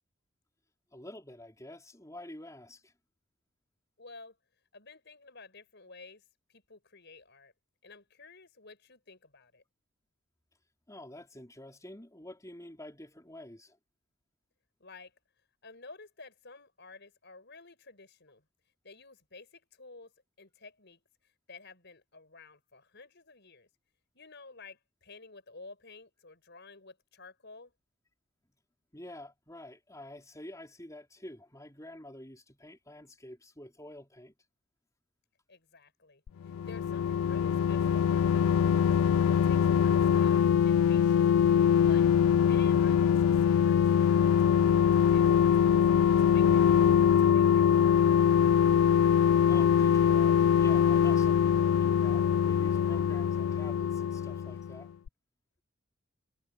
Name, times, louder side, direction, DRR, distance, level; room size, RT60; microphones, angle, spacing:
voice 1, 0.9-2.9 10.9-13.8 28.9-34.3 49.5-54.9, left 1 dB, 15° left, 4.2 m, -47 dB
voice 2, 4.0-4.4 4.7-6.2 6.5-7.5 7.8-9.6 14.8-15.1 15.6-18.4 18.8-20.1 20.4-21.0 21.5-23.7 24.1-27.7 35.5-39.0 39.3-41.3 41.8-42.1 42.4-45.8 46.2-47.9, left 3 dB, 55° left, 5.9 m, -52 dB
sound 1, 36.3-54.8 55.1-55.2, left 8 dB, 75° left, 0.3 m, -23 dB
head